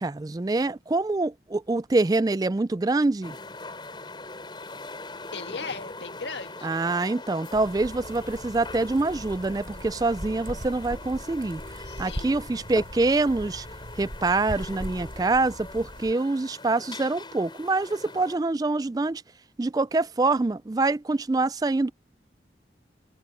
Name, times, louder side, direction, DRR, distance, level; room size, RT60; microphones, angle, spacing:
voice 1, 0.0-3.4 6.6-11.6 12.0-13.7 14.0-19.2 19.6-21.9, right 3 dB, 20° right, 0.3 m, -25 dB
sound 1, 3.2-18.4, left 3 dB, 25° left, 4.5 m, -42 dB
voice 2, 5.3-6.8 11.8-12.4, left 4 dB, 85° left, 1.7 m, -38 dB
sound 2, 7.5-16.1, equal, 50° right, 6.9 m, -40 dB
head